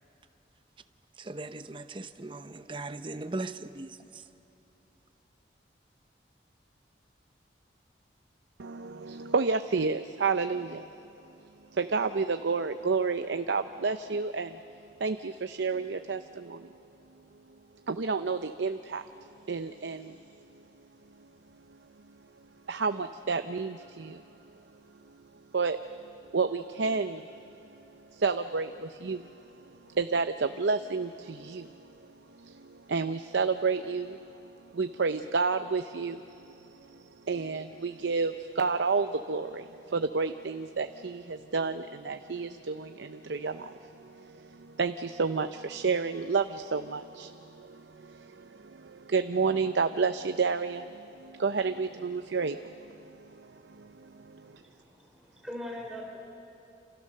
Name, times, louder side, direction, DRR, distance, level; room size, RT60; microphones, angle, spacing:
voice 1, 1.2-4.3, right 2 dB, 30° right, 0.8 m, -39 dB
voice 2, 8.6-10.9 11.7-14.6 15.0-16.7 17.9-19.0 19.5-20.2 22.7-24.2 25.5-25.8 26.3-27.3 28.1-29.3 29.9-31.8 32.4-34.2 34.7-54.5, right 4 dB, 80° right, 0.6 m, -30 dB
voice 3, 54.4-56.2, left 1 dB, 5° right, 4.5 m, -42 dB
28.5 x 28.0 x 6.6 m
head